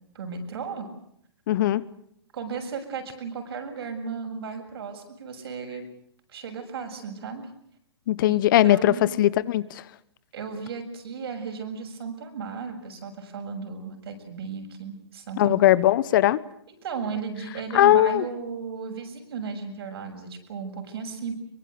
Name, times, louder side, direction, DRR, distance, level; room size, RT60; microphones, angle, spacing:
voice 1, 0.2-0.9 2.3-5.8 6.3-7.5 8.2-8.4 8.6-9.1 10.3-15.6 16.7-21.3, right 5 dB, 65° right, 5 dB, 7.0 m, -35 dB
voice 2, 1.5-1.9 8.1-9.8 15.4-16.4 17.7-18.2, left 13 dB, 50° left, 19 dB, 1.1 m, -19 dB
23.5 x 23.0 x 8.1 m, 0.71 s
hypercardioid pair, 130°, 14 cm